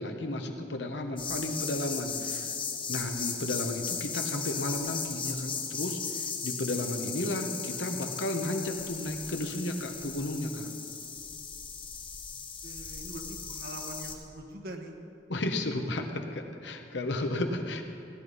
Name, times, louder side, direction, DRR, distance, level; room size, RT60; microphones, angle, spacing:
voice 1, 0.0-2.5 2.9-10.7 15.3-17.8, left 1 dB, 80° left, 5 dB, 1.1 m, -33 dB
sound 1, 1.2-14.1, left 6 dB, 30° left, 1.1 m, -37 dB
voice 2, 12.6-15.0, right 1 dB, 60° right, 3 dB, 1.4 m, -43 dB
17.0 x 10.5 x 4.1 m, 2.5 s
head